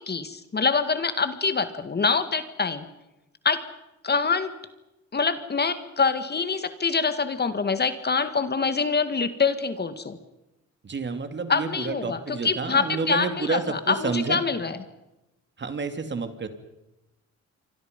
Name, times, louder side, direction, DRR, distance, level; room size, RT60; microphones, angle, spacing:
voice 1, 0.0-2.9 3.4-3.6 4.0-4.5 5.1-10.2 11.5-14.8, left 4 dB, 35° left, 10 dB, 2.0 m, -25 dB
voice 2, 10.8-14.4 15.6-16.5, right 4 dB, 35° right, 8 dB, 2.8 m, -29 dB
28.0 x 25.0 x 5.4 m, 0.95 s
cardioid pair, 90°, 30 cm